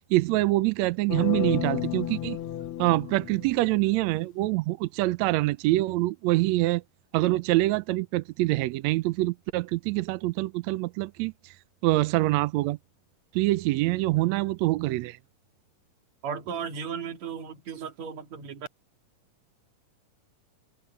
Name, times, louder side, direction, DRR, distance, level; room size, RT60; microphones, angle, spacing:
voice 1, 0.1-2.4 2.8-6.8 7.1-11.5 11.8-12.8 13.3-15.2, right 18 dB, 80° right, 1.6 m, -25 dB
sound 1, 1.1-4.1, left 12 dB, 85° left, 1.2 m, -33 dB
voice 2, 16.2-18.7, right 7 dB, 60° right, 3.2 m, -35 dB
omnidirectional pair, 3.8 m